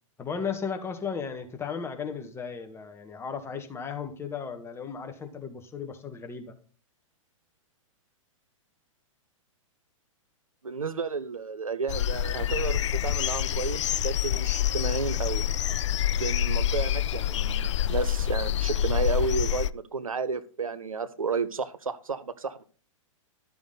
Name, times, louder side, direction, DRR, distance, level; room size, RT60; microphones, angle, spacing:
voice 1, 0.2-6.6, left 6 dB, 15° left, 5 dB, 1.6 m, -35 dB
voice 2, 10.6-15.4 16.2-22.6, right 4 dB, 85° right, 13 dB, 0.9 m, -32 dB
sound 1, 11.9-19.7, left 11 dB, 60° left, 0.4 m, -27 dB
12.5 x 6.9 x 4.0 m, 0.41 s
figure-of-eight pair, 110°, 17 cm